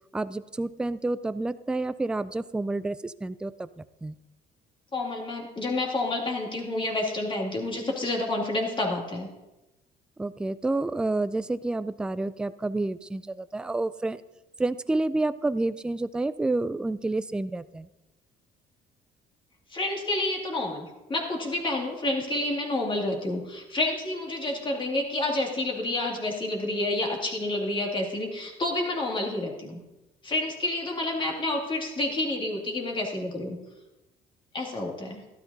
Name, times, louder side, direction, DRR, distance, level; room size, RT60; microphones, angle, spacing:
voice 1, 0.1-3.7 4.0-4.2 10.2-14.2 14.6-17.9, right 2 dB, 5° right, 14 dB, 0.3 m, -29 dB
voice 2, 4.9-9.3 19.7-29.8 30.2-33.6 34.5-35.2, left 2 dB, 30° left, -1 dB, 2.4 m, -29 dB
13.0 x 12.0 x 2.8 m, 1.0 s
cardioid pair, 110°, 17 cm